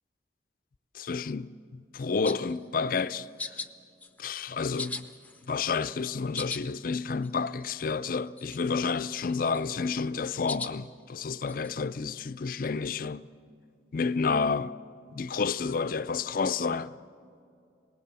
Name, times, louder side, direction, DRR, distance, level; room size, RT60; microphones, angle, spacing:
voice 1, 0.9-3.6 4.2-5.1 5.5-13.3 13.9-14.7 15.1-16.9, left 5 dB, 50° left, 0.4 m, -30 dB
sound 1, 2.2-2.5 3.4-3.7 4.0-4.5 4.7-5.8 6.1-6.6 7.0-7.1 7.2-7.3 7.7-8.1 8.4-8.8 9.3-9.9 10.5-10.7 11.5-11.7, left 4 dB, 10° left, 0.6 m, -38 dB
25.5 x 19.5 x 7.0 m
head